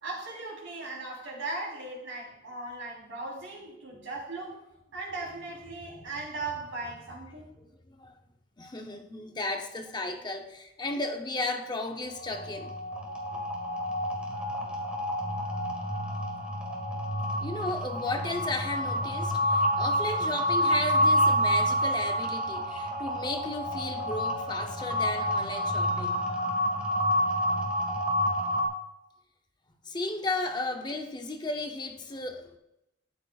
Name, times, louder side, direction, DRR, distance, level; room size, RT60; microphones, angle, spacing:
voice 1, 0.0-4.6 4.9-7.4, right 2 dB, 70° right, 3.5 m, -38 dB
voice 2, 7.6-8.2 8.6-12.7 17.3-26.2 29.8-32.6, left 2 dB, 20° left, 0.6 m, -34 dB
sound 1, 12.0-28.7, equal, 5° right, 1.4 m, -28 dB
12.5 x 9.0 x 2.4 m
head